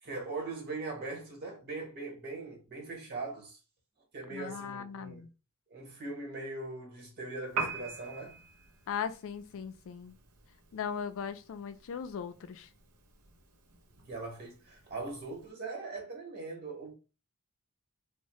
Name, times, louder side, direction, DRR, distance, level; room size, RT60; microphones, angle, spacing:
voice 1, 0.0-3.6 4.1-5.3 5.7-8.4 14.1-16.9, right 3 dB, 45° right, 1.1 m, -40 dB
voice 2, 4.3-5.3 8.9-10.1 10.7-12.7, left 7 dB, 65° left, 0.4 m, -38 dB
Piano, 7.5-15.5, right 4 dB, 75° right, 0.6 m, -44 dB
2.6 x 2.1 x 3.0 m
head